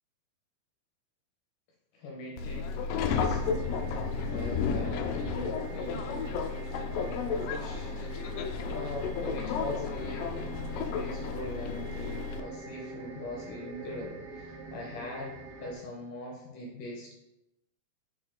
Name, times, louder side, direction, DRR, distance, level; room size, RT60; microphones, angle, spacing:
voice 1, 1.9-17.1, left 1 dB, 70° left, -2 dB, 2.2 m, -42 dB
Subway metro underground, 2.4-12.4, left 5 dB, 90° left, 1.9 m, -33 dB
sound 1, 3.2-15.7, right 3 dB, 70° right, 2.2 m, -44 dB
6.4 x 4.3 x 3.8 m, 0.90 s
omnidirectional pair, 4.5 m